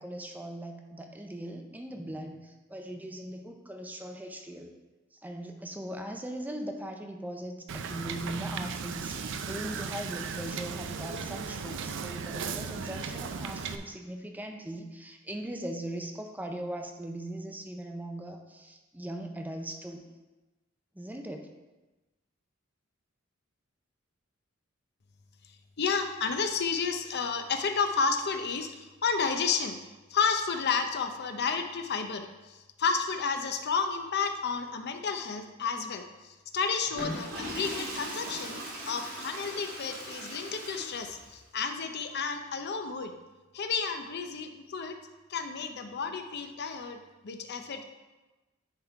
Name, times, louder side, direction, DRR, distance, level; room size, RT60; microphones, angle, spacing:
voice 1, 0.0-4.7 5.1-20.0 20.9-21.5, right 1 dB, 10° right, 4 dB, 0.6 m, -40 dB
Wind / Boat Water vehicle, 7.7-13.8, right 5 dB, 65° right, 0.5 m, -36 dB
voice 2, 25.8-29.8 30.1-43.1 43.5-45.0 45.3-47.8, left 5 dB, 55° left, 7 dB, 0.6 m, -31 dB
Water / Toilet flush, 36.8-41.3, right 1 dB, 90° right, 2.7 m, -39 dB
9.9 x 3.7 x 4.6 m, 1.1 s
head